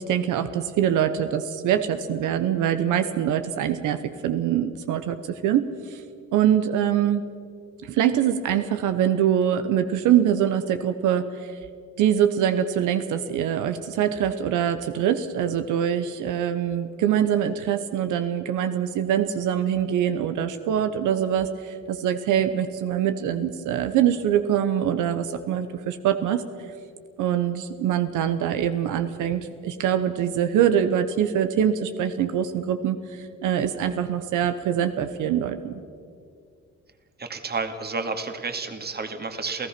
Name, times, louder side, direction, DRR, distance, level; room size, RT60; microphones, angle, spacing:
voice 1, 0.0-6.0 6.3-7.2 7.8-11.5 12.0-26.4 27.2-35.8, right 9 dB, 90° right, 10 dB, 1.0 m, -24 dB
voice 2, 37.2-39.7, right 4 dB, 35° right, 7 dB, 2.1 m, -31 dB
28.5 x 16.0 x 6.0 m, 2.2 s
cardioid pair, 90°, 30 cm